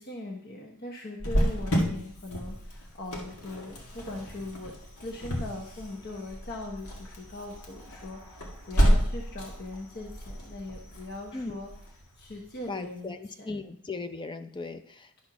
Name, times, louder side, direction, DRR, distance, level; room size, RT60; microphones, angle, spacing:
voice 1, 0.0-4.7 5.0-11.7 12.2-13.6, left 2 dB, 45° left, 0 dB, 1.0 m, -40 dB
Cricket, 1.2-12.7, equal, 90° left, 1.8 m, -31 dB
voice 2, 12.7-15.2, left 3 dB, 20° left, 9 dB, 0.5 m, -38 dB
11.0 x 4.3 x 5.9 m, 0.63 s
head